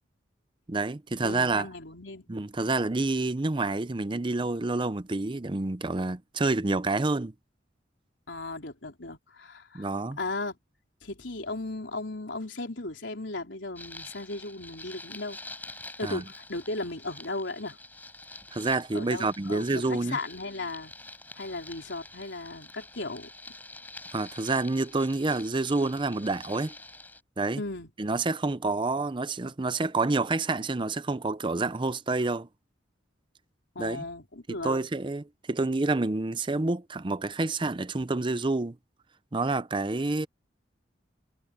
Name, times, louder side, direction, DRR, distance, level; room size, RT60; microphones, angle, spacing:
voice 1, 0.7-1.7 2.3-7.3 9.7-10.2 16.0-16.2 18.5-20.2 24.1-26.7 27.4-27.6 28.0-32.5 33.8-34.0 34.5-38.8 39.3-40.3, right 3 dB, 25° right, 0.6 m, -28 dB
voice 2, 1.2-2.3 8.3-9.9 10.2-10.6 11.0-15.4 16.0-17.8 18.9-20.9 21.4-23.3 27.6-27.9 33.8-34.8, left 2 dB, 80° left, 3.7 m, -36 dB
sound 1, 13.7-27.2, left 2 dB, 10° left, 6.3 m, -47 dB
head